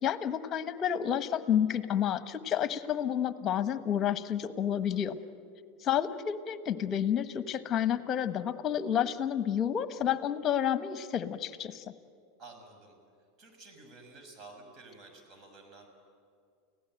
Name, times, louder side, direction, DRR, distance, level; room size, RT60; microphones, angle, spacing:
voice 1, 0.0-5.2 5.8-11.8, left 9 dB, 40° left, 12 dB, 1.3 m, -30 dB
voice 2, 12.4-12.9 13.4-15.9, right 3 dB, 40° right, 4 dB, 6.4 m, -51 dB
30.0 x 17.0 x 9.0 m, 2.3 s
hypercardioid pair, 95°, 0 cm